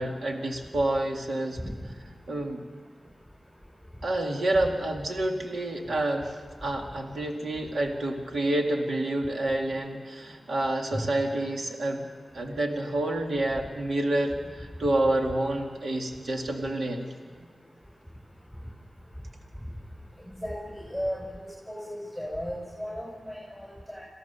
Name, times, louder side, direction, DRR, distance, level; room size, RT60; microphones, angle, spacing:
voice 1, 0.0-1.6 2.3-2.6 4.0-12.0 12.3-17.1, right 1 dB, 80° right, 2 dB, 2.2 m, -28 dB
voice 2, 20.4-21.2 21.7-24.0, equal, 10° right, -4 dB, 7.0 m, -35 dB
27.0 x 17.0 x 6.9 m, 1.5 s
cardioid pair, 55°, 0 cm